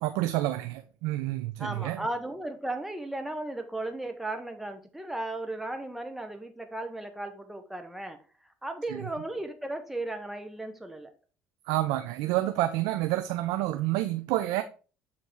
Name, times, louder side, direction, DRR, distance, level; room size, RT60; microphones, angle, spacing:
voice 1, 0.0-2.0 8.9-9.0 11.7-14.6, right 15 dB, 80° right, 0.5 m, -29 dB
voice 2, 1.6-11.1, right 2 dB, 5° right, 1.1 m, -36 dB
7.2 x 3.8 x 4.7 m
supercardioid pair, 75°, 6 cm